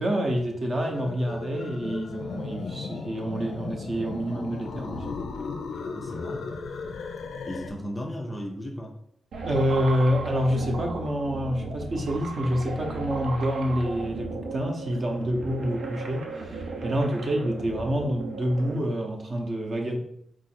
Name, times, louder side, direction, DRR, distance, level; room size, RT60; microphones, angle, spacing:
voice 1, 0.0-5.2 9.4-20.0, equal, 30° right, 1 dB, 0.7 m, -27 dB
sound 1, 0.9-7.7, left 4 dB, 70° left, 0.4 m, -36 dB
voice 2, 5.9-6.5 7.4-8.9 16.8-17.1, equal, 15° left, 1 dB, 0.5 m, -36 dB
sound 2, 9.3-18.8, right 3 dB, 70° right, 0.7 m, -35 dB
4.7 x 2.4 x 4.2 m, 0.72 s
wide cardioid pair, 170°, 0 cm